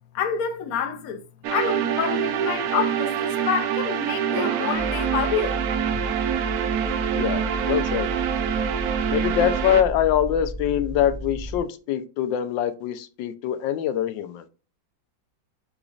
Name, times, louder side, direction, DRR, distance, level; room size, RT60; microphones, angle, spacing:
voice 1, 0.1-1.2 1.5-5.6, left 7 dB, 65° left, 1.0 m, -27 dB
sound 1, 1.4-9.8, right 9 dB, 70° right, 0.9 m, -25 dB
sound 2, 4.7-11.6, left 1 dB, 15° right, 1.6 m, -33 dB
voice 2, 7.1-8.1 9.1-14.4, left 10 dB, 85° left, 1.3 m, -24 dB
5.0 x 3.9 x 2.3 m
omnidirectional pair, 2.0 m